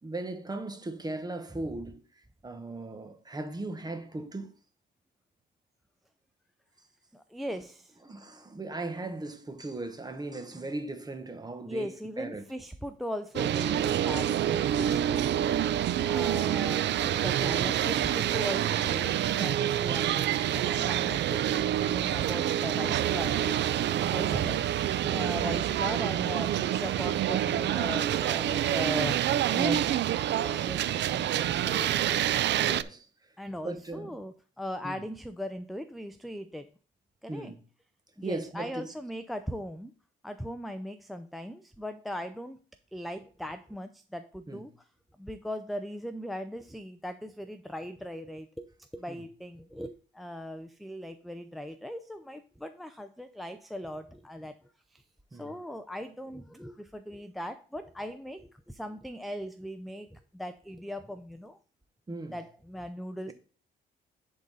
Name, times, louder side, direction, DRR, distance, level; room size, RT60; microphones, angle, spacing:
voice 1, 0.0-4.5 7.5-7.6 8.0-12.4 24.2-24.4 25.0-25.3 32.6-33.1 33.6-34.2 34.8-35.0 37.3-37.6 38.2-38.9 44.5-44.6 49.1-49.2 55.3-55.6 62.1-62.4, right 2 dB, 20° right, 1.1 m, -38 dB
voice 2, 7.1-8.0 11.7-15.4 16.0-23.7 24.1-24.6 25.1-29.2 29.5-29.9 30.4-32.3 33.4-36.7 37.2-37.5 38.2-39.9 40.2-42.6 42.9-44.7 45.2-54.6 54.9-55.0 55.3-61.6 62.3-63.3, equal, ahead, 0.5 m, -39 dB
sound 1, 13.4-32.8, right 11 dB, 65° right, 0.5 m, -27 dB
10.5 x 3.9 x 4.0 m
cardioid pair, 90°, 20 cm